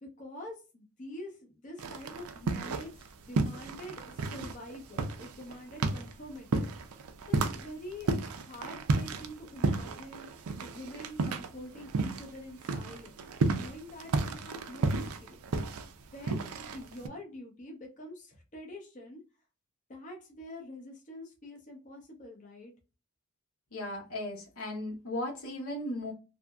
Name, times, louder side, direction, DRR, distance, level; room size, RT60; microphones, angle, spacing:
voice 1, 0.0-6.7 7.3-13.1 13.5-15.4 16.1-19.2 19.9-22.7, left 1 dB, 35° left, 0 dB, 0.6 m, -46 dB
sound 1, 1.8-3.1 3.3-12.4 12.6-17.1, right 3 dB, 90° right, 0.4 m, -32 dB
voice 2, 23.7-26.1, left 1 dB, 85° left, -1 dB, 1.1 m, -36 dB
2.7 x 2.5 x 2.2 m, 0.31 s
head